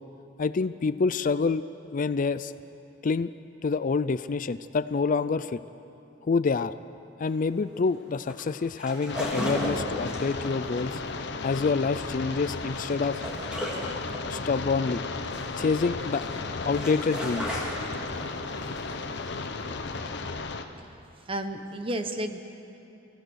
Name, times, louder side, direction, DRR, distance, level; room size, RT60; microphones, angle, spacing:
voice 1, 0.4-1.6 1.9-2.5 3.0-3.3 3.6-5.6 6.2-6.7 7.2-11.0 11.4-13.2 14.2-15.0 15.6-16.2 16.6-17.8, left 4 dB, 45° left, 14 dB, 0.4 m, -27 dB
sound 1, 7.2-20.3, equal, 5° right, 3.4 m, -36 dB
sound 2, 9.1-20.7, left 3 dB, 60° left, 1.0 m, -34 dB
voice 2, 21.3-22.4, right 1 dB, 30° right, 8 dB, 1.0 m, -31 dB
26.5 x 16.0 x 6.4 m, 2.8 s
head